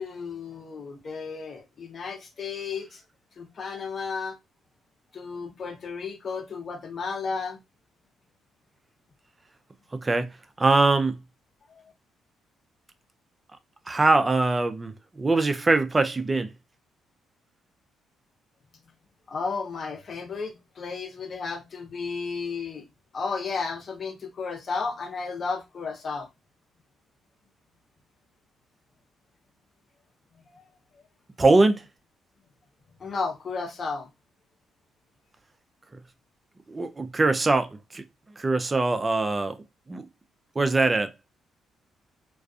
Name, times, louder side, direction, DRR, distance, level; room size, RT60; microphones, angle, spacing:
voice 1, 0.0-3.0 3.4-4.4 5.1-7.6 11.7-11.8 19.3-22.8 23.1-26.3 33.0-34.1, left 4 dB, 45° left, 0.8 m, -33 dB
voice 2, 9.9-10.3 10.6-11.2 13.9-16.5 31.4-31.8 36.7-38.0 38.4-39.6 39.9-40.0 40.6-41.1, right 3 dB, 25° right, 0.4 m, -22 dB
2.4 x 2.3 x 2.4 m
cardioid pair, 90°, 0 cm